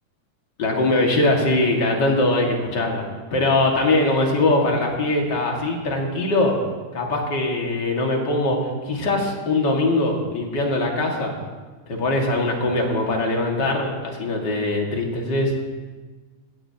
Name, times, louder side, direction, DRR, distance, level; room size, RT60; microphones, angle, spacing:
voice 1, 0.6-3.0 3.3-6.5 6.9-8.6 8.9-11.3 11.9-15.5, left 2 dB, 40° left, 0 dB, 1.8 m, -21 dB
21.0 x 16.0 x 2.9 m, 1.4 s
omnidirectional pair, 4.4 m